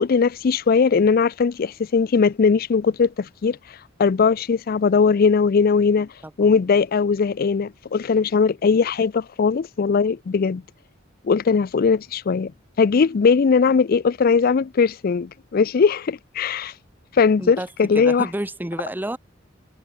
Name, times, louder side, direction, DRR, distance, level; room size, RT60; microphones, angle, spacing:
voice 1, 0.0-6.1 6.4-10.6 11.2-12.5 12.8-16.7 17.1-18.3, left 5 dB, 50° left, 0.4 m, -19 dB
voice 2, 6.2-6.6 17.4-17.7 17.9-19.2, right 1 dB, 10° right, 0.7 m, -30 dB
head